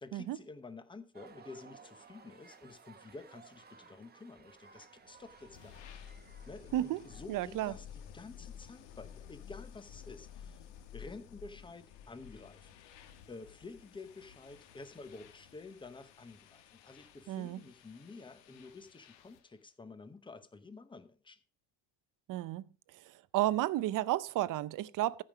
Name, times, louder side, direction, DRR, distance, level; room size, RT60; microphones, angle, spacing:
voice 1, 0.0-5.8 6.4-10.6 10.9-12.7 13.3-21.4, left 3 dB, 10° left, 0.9 m, -50 dB
sound 1, 1.1-7.3, right 5 dB, 20° right, 1.1 m, -58 dB
sound 2, 4.9-19.5, left 8 dB, 80° left, 1.5 m, -53 dB
voice 2, 7.3-7.7 17.3-17.6 22.3-22.6 22.9-25.2, right 14 dB, 50° right, 0.6 m, -32 dB
14.5 x 5.3 x 4.9 m
cardioid pair, 135°, 43 cm